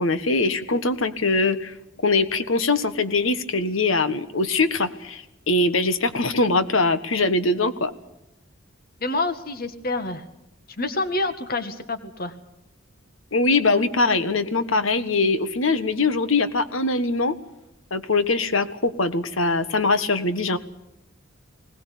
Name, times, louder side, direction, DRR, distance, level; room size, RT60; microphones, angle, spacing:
voice 1, 0.0-1.7 2.0-7.9 13.3-17.3 17.9-20.6, left 3 dB, 90° left, 11 dB, 1.5 m, -22 dB
voice 2, 9.0-10.2 10.8-12.3, left 2 dB, 50° left, 10 dB, 1.8 m, -27 dB
21.5 x 18.5 x 8.4 m, 0.86 s
head